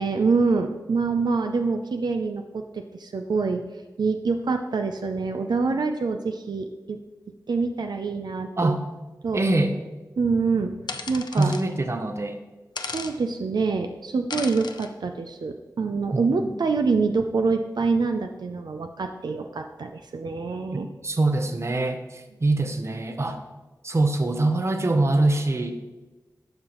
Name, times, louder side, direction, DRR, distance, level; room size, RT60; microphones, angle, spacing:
voice 1, 0.0-3.6 4.0-7.0 7.5-8.7 9.2-9.4 10.2-10.7 11.1-11.5 12.9-20.9, right 4 dB, 80° right, 6 dB, 0.5 m, -25 dB
voice 2, 9.3-9.8 11.3-12.4 16.1-16.5 20.7-23.4 23.8-25.7, right 2 dB, 40° right, 7 dB, 0.7 m, -24 dB
sound 1, 10.9-11.6 12.8-13.1 14.3-14.9, left 4 dB, 85° left, 0.5 m, -34 dB
11.5 x 5.5 x 3.0 m, 1.2 s
wide cardioid pair, 85°, 7 cm